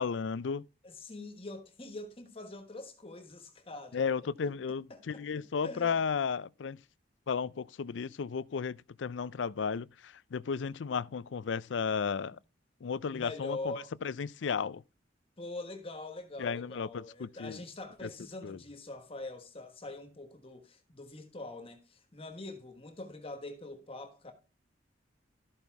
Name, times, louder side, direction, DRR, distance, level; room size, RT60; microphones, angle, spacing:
voice 1, 0.0-0.6 3.9-6.8 7.3-12.4 12.8-13.7 14.0-14.8 16.4-17.6 18.0-18.1 18.4-18.6, left 6 dB, 80° left, 0.4 m, -34 dB
voice 2, 0.8-4.1 4.4-4.5 4.9-5.2 5.6-6.0 13.1-13.9 15.4-24.3, left 2 dB, 30° left, 1.3 m, -44 dB
13.5 x 5.5 x 4.6 m
head